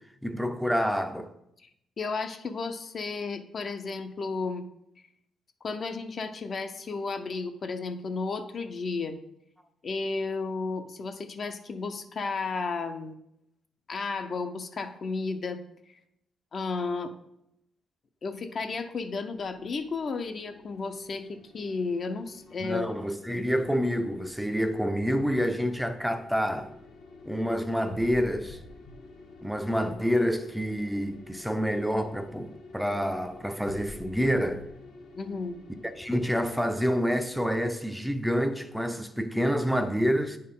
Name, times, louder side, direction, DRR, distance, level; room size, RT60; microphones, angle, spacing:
voice 1, 0.2-1.3 22.6-26.7 27.3-28.6 29.4-34.6 36.0-40.4, equal, ahead, 0.5 m, -28 dB
voice 2, 2.0-4.6 5.6-9.2 9.8-13.2 13.9-15.6 15.9-16.0 16.5-17.1 18.2-22.9 35.1-35.6, left 4 dB, 45° left, 0.6 m, -33 dB
sound 1, 19.3-37.7, left 2 dB, 80° left, 1.1 m, -49 dB
9.4 x 4.3 x 3.7 m
cardioid pair, 90°, 0 cm